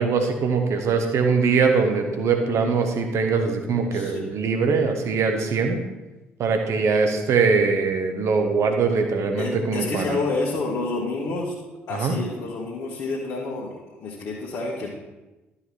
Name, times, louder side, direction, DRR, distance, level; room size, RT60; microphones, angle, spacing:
voice 1, 0.0-5.8 6.4-10.2 11.9-12.1, right 5 dB, 50° right, 5 dB, 1.3 m, -22 dB
voice 2, 3.9-4.3 9.4-11.6 11.9-14.9, left 3 dB, 55° left, -4 dB, 1.5 m, -29 dB
12.5 x 5.6 x 4.4 m, 1.1 s
figure-of-eight pair, 45°, 6 cm